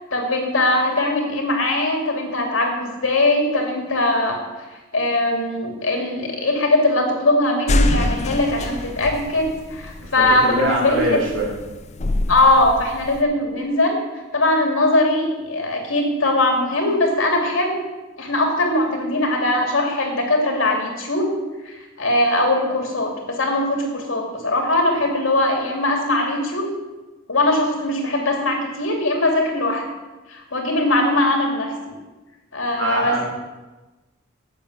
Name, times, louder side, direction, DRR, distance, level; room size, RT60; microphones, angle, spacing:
voice 1, 0.1-4.4 4.9-11.2 12.3-14.0 14.3-17.8 18.2-21.3 21.7-26.6 27.3-29.8 30.3-31.9 32.5-33.2, left 2 dB, 85° left, 1 dB, 2.7 m, -20 dB
sound 1, 7.7-13.2, left 1 dB, 35° left, 0.6 m, -25 dB
voice 2, 10.0-11.5 32.7-33.2, right 1 dB, 75° right, -2 dB, 3.0 m, -23 dB
8.6 x 7.1 x 8.3 m, 1.2 s
head